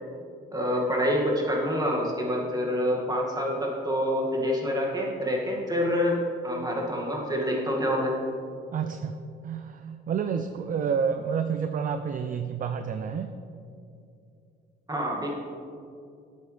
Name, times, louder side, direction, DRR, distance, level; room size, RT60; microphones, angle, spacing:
voice 1, 0.5-8.2 14.9-15.3, equal, 20° right, -2 dB, 2.1 m, -27 dB
voice 2, 8.7-13.4, right 6 dB, 45° right, 8 dB, 0.5 m, -29 dB
11.5 x 8.2 x 3.4 m, 2.5 s
cardioid pair, 90°, 20 cm